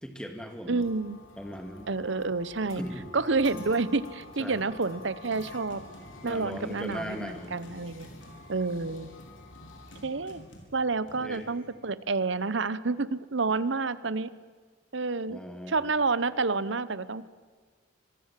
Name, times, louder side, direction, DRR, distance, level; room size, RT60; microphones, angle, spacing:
voice 1, 0.0-0.8 1.4-1.9 2.8-3.1 3.5-3.7 4.4-4.6 6.2-7.6 11.2-11.5 15.3-15.8, equal, 5° left, 5 dB, 2.2 m, -39 dB
sound 1, 0.7-10.0, left 2 dB, 90° left, 3.7 m, -49 dB
voice 2, 0.7-1.2 1.9-2.8 3.1-5.8 6.2-8.1 8.5-9.1 10.0-10.4 10.7-14.3 14.9-15.4 15.7-17.3, right 3 dB, 65° right, 16 dB, 0.9 m, -29 dB
sound 2, 4.9-11.7, equal, 65° left, 4.7 m, -52 dB
25.0 x 22.0 x 7.6 m, 1.5 s
head